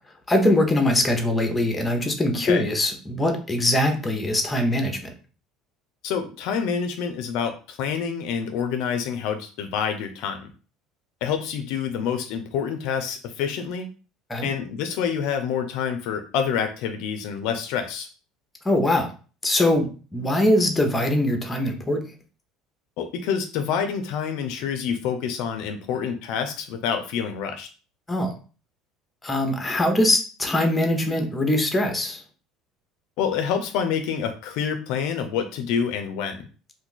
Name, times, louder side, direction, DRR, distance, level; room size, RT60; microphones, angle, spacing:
voice 1, 0.3-5.1 14.3-14.5 18.6-19.1 19.4-22.0 28.1-28.3 29.2-32.2, left 1 dB, 15° left, 5 dB, 0.8 m, -22 dB
voice 2, 6.0-10.5 11.2-13.9 14.4-18.1 23.0-27.7 33.2-36.5, left 7 dB, 75° left, 7 dB, 0.4 m, -27 dB
2.5 x 2.4 x 3.8 m, 0.37 s
supercardioid pair, 100°, 0 cm